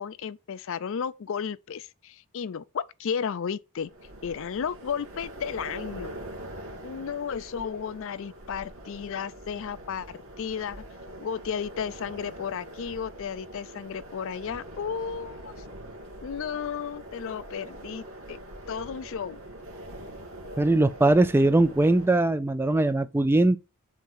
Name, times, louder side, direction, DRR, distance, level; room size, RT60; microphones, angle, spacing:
voice 1, 0.0-3.9 4.2-6.1 6.8-10.8 11.2-15.5 16.2-18.0 18.3-18.4 18.7-19.4, left 7 dB, 60° left, 0.4 m, -33 dB
sound 1, 3.8-22.1, right 1 dB, 65° right, 2.2 m, -43 dB
voice 2, 20.6-23.6, right 2 dB, 10° right, 0.3 m, -21 dB
7.2 x 2.8 x 5.4 m
head